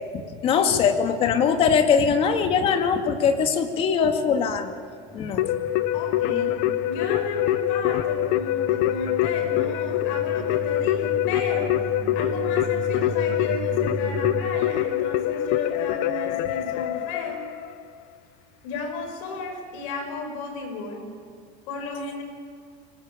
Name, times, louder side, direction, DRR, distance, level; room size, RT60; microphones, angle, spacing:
voice 1, 0.1-4.7 5.1-5.5, left 6 dB, 35° left, 6 dB, 2.2 m, -21 dB
sound 1, 5.0-14.4, right 4 dB, 90° right, 5.1 m, -37 dB
Keyboard (musical), 5.4-17.8, left 13 dB, 55° left, 1.0 m, -25 dB
voice 2, 5.9-6.6 6.8-11.8 12.1-17.4 18.6-21.1 21.7-22.2, left 3 dB, 70° left, 4 dB, 6.0 m, -33 dB
25.5 x 19.5 x 8.6 m, 2.3 s
cardioid pair, 170°, 17 cm